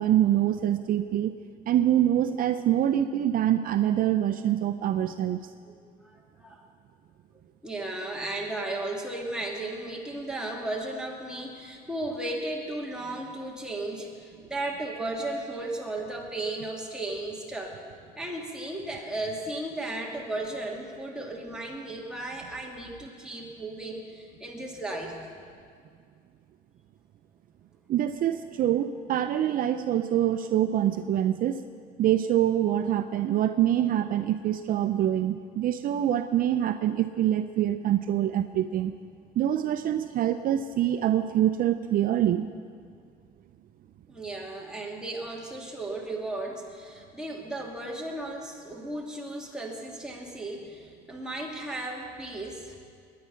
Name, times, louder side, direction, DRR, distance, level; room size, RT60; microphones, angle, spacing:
voice 1, 0.0-1.3 1.7-5.4 27.9-31.6 32.0-38.9 39.4-42.5, right 11 dB, 55° right, 9 dB, 0.5 m, -25 dB
voice 2, 5.6-6.6 7.6-17.8 18.2-25.3 44.1-52.8, right 2 dB, 5° right, -2 dB, 2.5 m, -35 dB
21.0 x 9.5 x 5.7 m, 2.2 s
cardioid pair, 110°, 17 cm